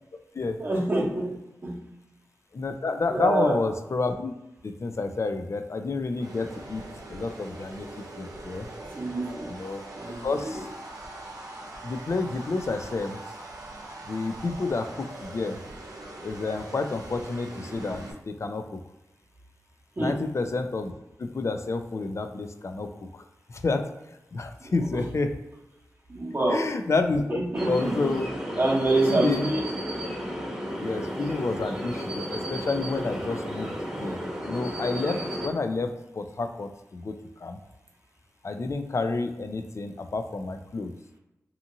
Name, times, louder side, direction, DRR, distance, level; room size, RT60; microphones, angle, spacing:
voice 1, 0.6-1.4 1.6-1.9 3.1-3.6 8.9-9.6 9.9-10.7 20.0-20.2 24.6-25.0 26.1-26.7 27.3-28.0 28.6-29.6, right 2 dB, 35° right, -3 dB, 0.8 m, -27 dB
voice 2, 2.5-4.3 4.6-6.8 7.1-7.9 8.2-8.7 9.5-9.8 10.2-10.7 11.8-13.2 14.0-15.6 16.2-18.8 20.0-20.9 21.2-23.2 23.5-23.8 24.3-25.3 26.5-27.4 27.7-28.3 29.1-29.5 30.8-33.7 34.0-34.2 34.5-37.6 38.4-41.0, left 3 dB, 50° left, 7 dB, 0.4 m, -29 dB
sound 1, 6.1-18.1, right 2 dB, 75° right, 0.6 m, -42 dB
sound 2, 27.5-35.5, equal, 10° right, 0.9 m, -33 dB
2.8 x 2.5 x 2.6 m, 0.97 s
cardioid pair, 40°, 6 cm